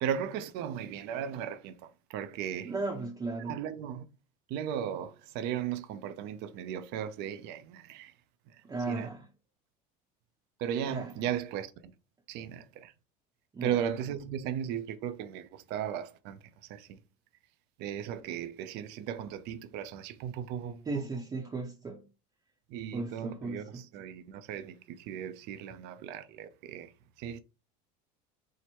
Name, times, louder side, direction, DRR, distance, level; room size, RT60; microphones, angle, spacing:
voice 1, 0.0-2.7 3.5-4.1 4.5-8.1 8.9-9.1 10.6-11.9 12.3-12.9 13.6-16.4 16.7-17.0 17.8-20.9 22.7-26.9 27.2-27.4, right 9 dB, 60° right, 0.6 m, -36 dB
voice 2, 2.6-3.6 8.6-9.3 10.9-11.1 13.5-13.8 20.9-22.1 22.9-23.8, right 3 dB, 20° right, 0.7 m, -36 dB
4.6 x 2.1 x 4.3 m
cardioid pair, 135°, 19 cm